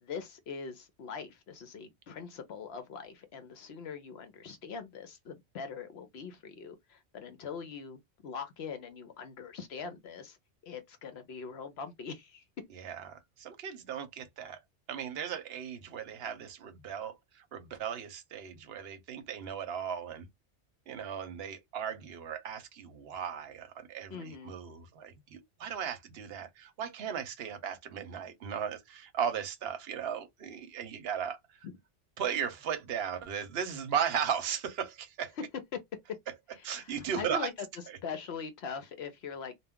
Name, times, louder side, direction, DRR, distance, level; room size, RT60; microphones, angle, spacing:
voice 1, 0.0-10.4 10.6-12.4 24.1-24.5 31.6-31.7 35.7-35.8 36.5-37.5 38.0-39.6, left 6 dB, 65° left, 0.8 m, -42 dB
voice 2, 12.7-14.6 14.9-20.3 20.9-31.4 32.2-35.3 36.6-37.5, right 8 dB, 65° right, 0.8 m, -36 dB
2.2 x 2.2 x 3.5 m
omnidirectional pair, 1.2 m